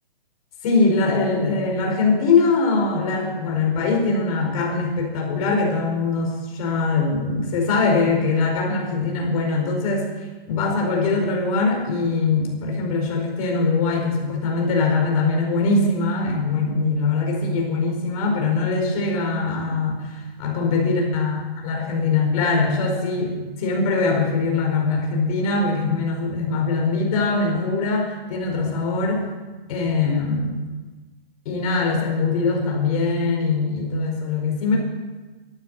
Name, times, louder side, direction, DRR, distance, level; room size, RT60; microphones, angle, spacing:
voice 1, 0.6-10.1 10.5-29.2 29.7-30.7 31.4-34.8, left 3 dB, 40° left, 0 dB, 5.0 m, -22 dB
14.0 x 11.5 x 7.9 m, 1.3 s
hypercardioid pair, 155°, 30 cm